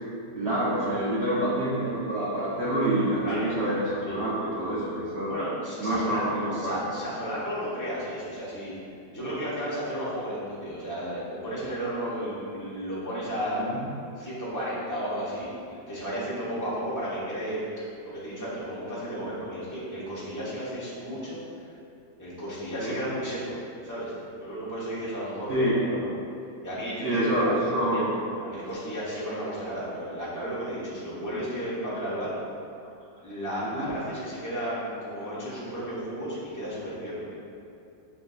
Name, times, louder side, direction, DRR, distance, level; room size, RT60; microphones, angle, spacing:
voice 1, 0.3-5.3 5.8-6.8 13.6-13.8 22.8-23.0 25.5-25.8 27.0-28.1 33.7-33.9 35.5-35.6, right 1 dB, 85° right, -7 dB, 0.5 m, -27 dB
voice 2, 5.3-6.2 6.5-8.7 9.1-13.7 14.2-17.6 18.0-21.7 22.2-23.5 23.8-26.1 26.6-28.1 28.4-32.4 33.2-37.3, equal, 20° left, -10 dB, 0.6 m, -33 dB
7.1 x 2.6 x 2.4 m, 2.5 s
omnidirectional pair, 1.9 m